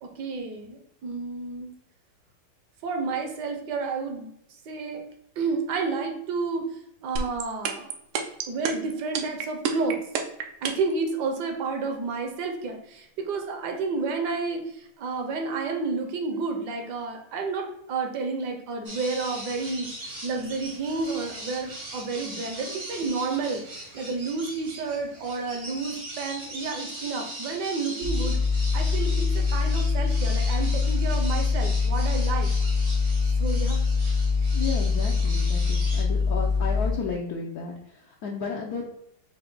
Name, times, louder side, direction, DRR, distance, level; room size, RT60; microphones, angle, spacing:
voice 1, 0.0-1.7 2.8-4.3 4.7-5.0 5.4-7.9 8.5-10.0 10.6-28.4 28.7-32.5 33.4-33.8, right 4 dB, 65° right, 3 dB, 1.1 m, -31 dB
sound 1, 7.2-10.9, right 7 dB, 90° right, 1.5 m, -27 dB
sound 2, 18.8-36.0, right 1 dB, 50° right, 0.7 m, -40 dB
sound 3, 28.0-36.9, left 4 dB, 65° left, 1.0 m, -24 dB
voice 2, 34.5-38.9, left 5 dB, 80° left, -1 dB, 0.8 m, -33 dB
5.6 x 2.2 x 3.8 m, 0.78 s
omnidirectional pair, 2.3 m